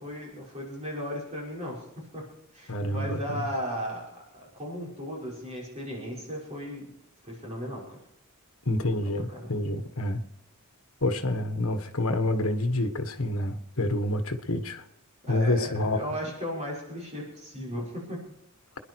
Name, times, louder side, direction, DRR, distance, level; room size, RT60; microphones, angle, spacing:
voice 1, 0.0-2.2 2.5-6.9 7.2-8.0 9.3-9.5 15.3-18.2, equal, 30° right, 5.9 m, -36 dB
voice 2, 2.7-3.5 8.6-10.2 11.0-14.8 15.3-16.0, left 1 dB, 65° left, 1.6 m, -28 dB
27.0 x 11.0 x 4.8 m
head